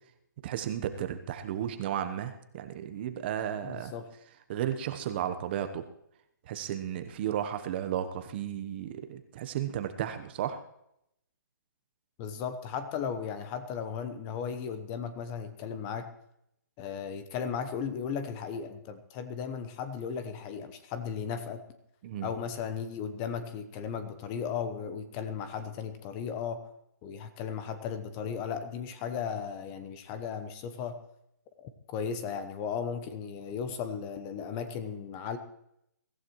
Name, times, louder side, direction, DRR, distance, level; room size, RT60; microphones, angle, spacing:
voice 1, 0.4-3.9 4.5-5.9 6.5-10.6 22.0-22.3, right 10 dB, 30° right, 9 dB, 1.0 m, -34 dB
voice 2, 3.6-4.1 12.2-16.1 16.8-21.6 22.2-26.6 27.0-31.0 31.6-35.4, left 7 dB, 20° left, 10 dB, 0.9 m, -36 dB
23.5 x 14.5 x 3.1 m, 0.78 s
hypercardioid pair, 155°, 11 cm